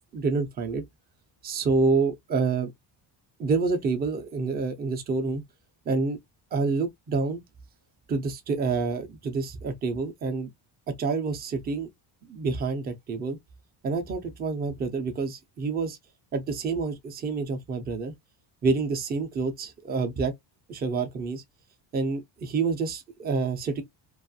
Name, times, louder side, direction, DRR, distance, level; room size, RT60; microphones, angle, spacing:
voice 1, 0.1-0.8 1.4-2.7 3.4-5.4 5.9-6.2 6.5-7.4 8.1-10.5 10.9-11.9 12.3-13.4 13.8-16.0 16.3-18.1 18.6-20.3 20.7-21.4 21.9-23.8, right 4 dB, 25° right, 0.3 m, -28 dB
2.4 x 2.3 x 2.5 m
cardioid pair, 170°, 48 cm